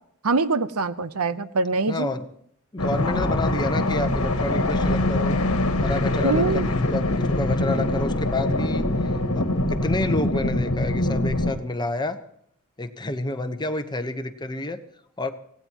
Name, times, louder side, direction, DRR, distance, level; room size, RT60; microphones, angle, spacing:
voice 1, 0.2-2.1 6.2-6.7, right 3 dB, 80° right, 14 dB, 0.9 m, -24 dB
voice 2, 1.9-2.2 2.7-5.4 5.8-6.6 6.9-12.2 12.8-14.8 15.2-15.3, left 2 dB, 20° left, 8 dB, 1.1 m, -29 dB
sound 1, 2.8-11.5, left 1 dB, 70° left, 1.5 m, -23 dB
25.0 x 18.0 x 3.0 m, 0.69 s
head